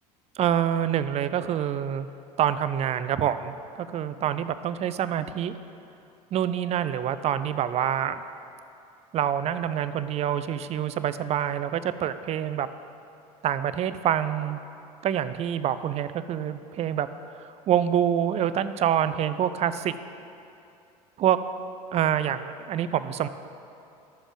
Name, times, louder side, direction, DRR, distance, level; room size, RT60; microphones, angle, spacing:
voice 1, 0.4-2.1 2.4-5.5 6.3-8.2 9.1-12.7 13.4-14.6 15.0-17.1 17.7-19.9 21.2-21.4 21.9-23.3, right 10 dB, 35° right, 12 dB, 0.4 m, -26 dB
12.5 x 7.0 x 3.5 m, 2.7 s
figure-of-eight pair, 70°, 20 cm